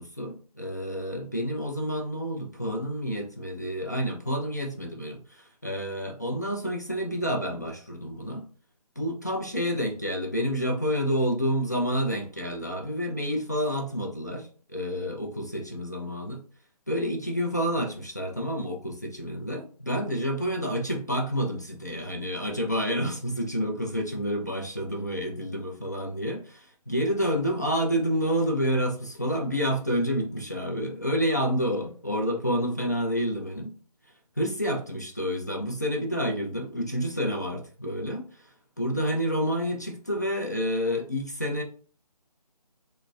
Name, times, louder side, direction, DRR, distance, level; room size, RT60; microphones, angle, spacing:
voice 1, 0.0-8.5 9.0-16.4 16.9-33.7 34.4-41.6, equal, 25° left, 0 dB, 0.3 m, -29 dB
3.7 x 2.0 x 2.2 m, 0.41 s
figure-of-eight pair, 155°, 21 cm